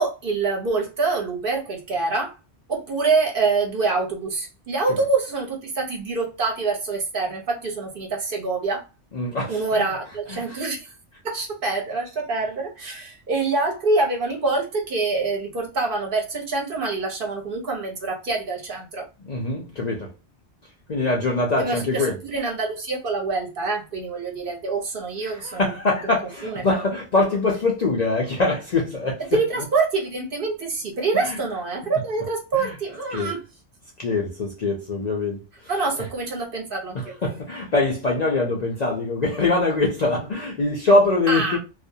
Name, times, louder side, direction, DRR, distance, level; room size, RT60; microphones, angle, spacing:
voice 1, 0.0-2.3 2.7-8.8 9.5-10.9 11.2-19.1 21.6-26.1 26.4-26.7 29.3-33.4 35.7-37.1 41.3-41.6, right 3 dB, 55° right, 0.9 m, -25 dB
voice 2, 9.1-9.9 10.3-10.6 19.2-20.1 20.9-22.1 25.2-29.2 31.2-31.4 32.5-32.8 33.1-33.3 34.0-35.4 37.2-41.6, left 2 dB, 50° left, 0.5 m, -23 dB
2.4 x 2.1 x 2.6 m
omnidirectional pair, 1.2 m